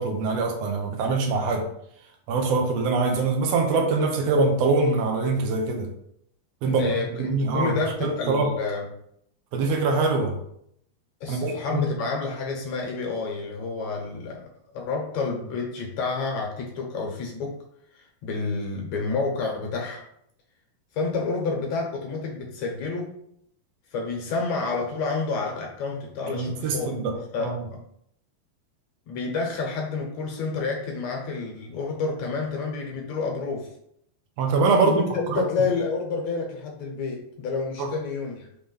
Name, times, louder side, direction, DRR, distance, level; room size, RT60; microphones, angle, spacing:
voice 1, 0.0-1.7 2.3-5.9 6.6-6.9 7.2-7.7 8.0-8.5 9.5-10.4 11.3-11.8 26.3-27.6 34.4-35.0 35.3-35.5 37.8-37.9, right 3 dB, 70° right, 3 dB, 1.6 m, -23 dB
voice 2, 6.6-8.9 11.2-14.5 14.7-17.6 17.9-20.0 20.9-23.1 23.9-27.0 27.3-27.8 29.1-33.7 34.8-38.5, left 4 dB, 65° left, 0 dB, 2.0 m, -29 dB
6.0 x 3.3 x 5.5 m, 0.71 s
omnidirectional pair, 4.2 m